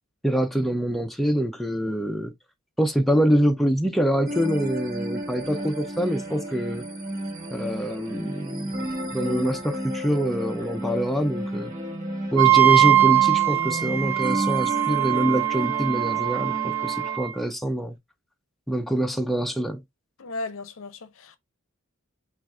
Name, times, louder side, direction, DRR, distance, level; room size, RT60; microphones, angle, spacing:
voice 1, 0.2-2.3 2.8-6.8 7.5-8.8 9.1-11.7 12.3-18.0 18.7-19.8, equal, ahead, 0.4 m, -25 dB
sound 1, 4.3-17.2, equal, 35° right, 1.3 m, -32 dB
Wind instrument woodwind instrument, 12.4-17.3, right 13 dB, 85° right, 1.0 m, -21 dB
voice 2, 20.2-21.4, left 2 dB, 65° left, 0.6 m, -35 dB
6.0 x 2.4 x 2.4 m
head